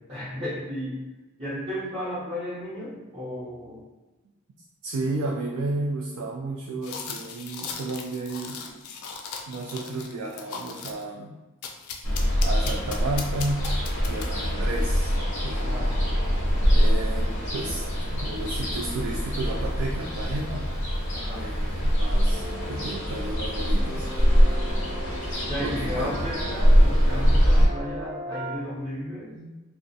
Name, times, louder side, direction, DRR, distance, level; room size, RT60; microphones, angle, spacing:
voice 1, 0.1-1.0 1.4-3.8 8.7-8.8 15.6-16.0 21.1-21.6 25.4-29.3, left 1 dB, 25° right, -13 dB, 0.6 m, -34 dB
voice 2, 4.8-8.6 9.5-11.3 12.4-13.7 14.1-15.2 15.4-16.1 16.7-17.8 18.1-20.7 21.3-24.1 24.4-24.6 25.6-26.1 29.4-29.6, right 2 dB, 75° right, -1 dB, 0.3 m, -32 dB
sound 1, 6.8-11.1 11.6-14.5, left 5 dB, 85° left, 0.3 m, -38 dB
Ocean, 12.0-27.7, equal, 60° left, 0.7 m, -23 dB
sound 2, 22.3-28.6, right 1 dB, 15° left, 0.5 m, -39 dB
2.3 x 2.0 x 2.6 m, 1.1 s
head